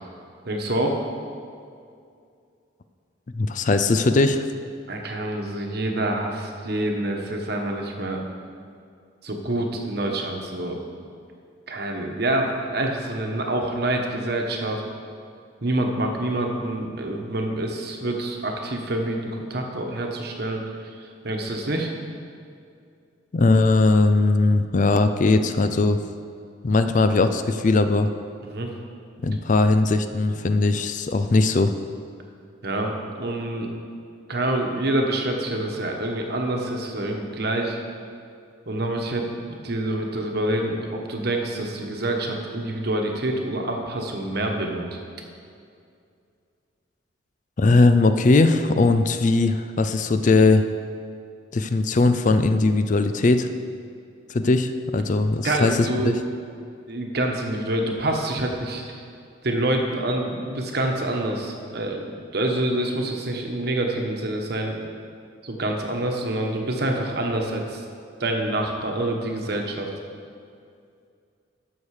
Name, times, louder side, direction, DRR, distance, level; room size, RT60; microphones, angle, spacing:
voice 1, 0.5-1.0 4.9-8.2 9.2-10.8 11.7-14.8 15.6-20.9 21.2-21.9 28.4-28.7 32.6-33.7 34.3-37.8 38.7-45.0 55.4-56.2 56.9-59.0 59.4-64.8 65.4-67.8 68.2-69.9, right 1 dB, 55° right, 2 dB, 1.2 m, -26 dB
voice 2, 3.4-4.5 23.3-26.0 26.6-28.1 29.2-31.7 47.6-50.6 51.5-53.5 54.3-56.1, left 3 dB, 40° left, 9 dB, 0.4 m, -19 dB
12.5 x 6.4 x 4.9 m, 2.4 s
head